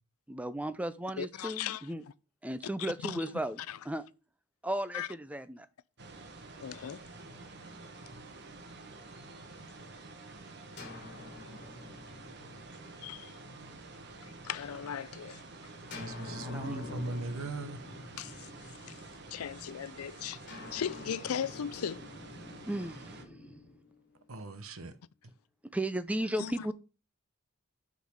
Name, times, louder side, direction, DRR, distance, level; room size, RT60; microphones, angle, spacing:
voice 1, 0.3-2.0 2.4-3.6 3.9-4.0 4.6-5.7 16.4-17.1 22.7-23.6 25.7-26.7, right 1 dB, 5° right, 0.5 m, -35 dB
voice 2, 1.2-1.9 2.8-3.4 3.7-3.8 4.9-5.1 6.6-7.0 13.0-13.3 14.2-15.4 18.2-19.0 19.3-22.0 26.4-26.7, left 8 dB, 85° left, 0.4 m, -38 dB
sound 1, 6.0-23.2, right 3 dB, 50° right, 1.1 m, -49 dB
sound 2, 10.8-14.6 15.9-19.5 20.5-24.6, left 2 dB, 55° left, 3.1 m, -48 dB
voice 3, 16.0-17.9 24.3-25.0, right 3 dB, 75° right, 1.0 m, -40 dB
8.6 x 4.0 x 6.3 m
head